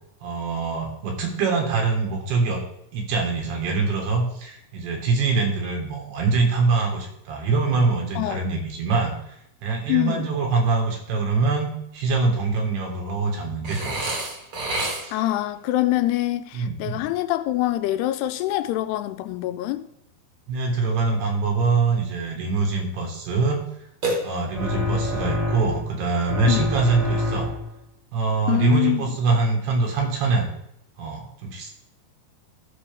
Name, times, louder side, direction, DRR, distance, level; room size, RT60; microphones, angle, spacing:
voice 1, 0.2-2.6 2.9-9.2 9.6-14.2 15.0-15.1 16.5-17.1 20.5-23.6 24.2-27.5 28.1-30.5 31.0-31.7, right 4 dB, 80° right, 3.7 m, -24 dB
voice 2, 9.9-10.3 15.1-19.9 26.5-26.7 28.5-29.1, left 15 dB, 90° left, 2.6 m, -24 dB
Burping eructation, 13.6-15.4 24.0-24.8, right 2 dB, 45° right, 1.9 m, -29 dB
sound 1, 24.5-25.9 26.2-27.8, left 2 dB, ahead, 1.5 m, -27 dB
14.0 x 5.9 x 3.5 m
omnidirectional pair, 4.6 m